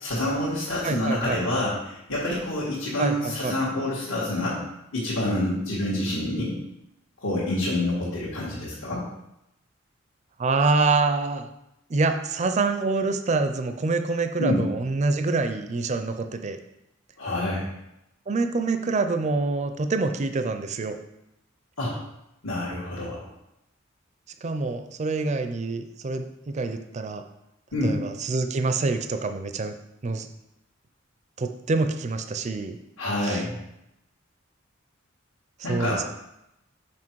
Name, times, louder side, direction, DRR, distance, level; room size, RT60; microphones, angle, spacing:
voice 1, 0.0-4.6 4.9-6.5 7.2-9.0 14.4-14.6 17.2-17.7 21.8-21.9 22.4-23.3 27.7-28.0 33.0-33.5 35.6-36.0, left 1 dB, 80° left, -8 dB, 1.8 m, -27 dB
voice 2, 0.8-1.4 3.0-3.6 10.4-11.5 11.9-16.6 18.3-21.0 24.4-26.3 26.5-27.2 27.8-29.8 30.0-30.3 31.4-32.8 33.2-33.4 35.7-36.0, right 3 dB, 35° right, 8 dB, 0.4 m, -26 dB
6.0 x 4.8 x 4.6 m, 0.86 s
head